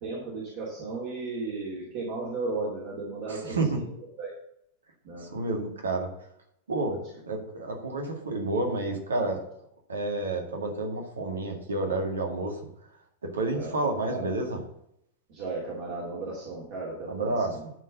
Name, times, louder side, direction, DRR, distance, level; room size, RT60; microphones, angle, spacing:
voice 1, 0.0-3.5 4.2-4.3 5.0-5.2 13.5-13.7 14.1-14.2 15.3-17.3, right 3 dB, 45° right, -4 dB, 2.8 m, -34 dB
voice 2, 3.3-3.8 5.2-6.1 6.7-9.4 9.9-12.6 13.2-14.6 17.1-17.7, right 2 dB, 70° right, 3 dB, 2.0 m, -30 dB
11.0 x 4.7 x 6.6 m, 0.76 s
figure-of-eight pair, 90°, 0 cm